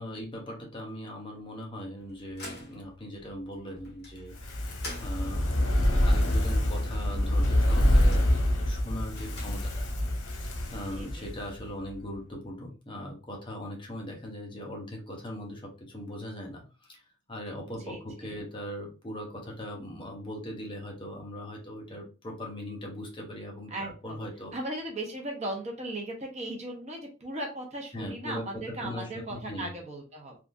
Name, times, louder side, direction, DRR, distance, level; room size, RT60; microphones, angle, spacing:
voice 1, 0.0-4.6 5.0-9.9 10.7-17.0 17.3-24.5 27.9-29.7, equal, 25° left, 0 dB, 0.7 m, -40 dB
sound 1, 2.0-10.0, left 1 dB, 50° left, 1.2 m, -48 dB
Fire, 4.3-11.6 11.9-12.0, left 1 dB, 85° left, 0.8 m, -26 dB
voice 2, 10.9-11.3 17.8-18.3 23.7-24.2 24.5-30.4, right 1 dB, 30° right, 1 dB, 0.7 m, -37 dB
3.4 x 2.5 x 2.5 m, 0.32 s
head